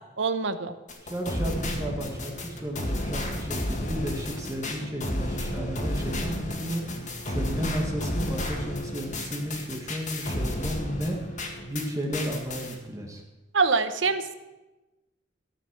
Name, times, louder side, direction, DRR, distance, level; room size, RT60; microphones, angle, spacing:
voice 1, 0.2-0.7 13.5-14.3, right 4 dB, 85° right, 11 dB, 0.9 m, -25 dB
sound 1, 0.9-11.9 12.1-12.7, left 1 dB, 40° left, 1.9 m, -32 dB
voice 2, 1.0-11.2 11.6-13.2, equal, 20° right, 1 dB, 1.4 m, -33 dB
14.5 x 6.2 x 7.8 m, 1.1 s
head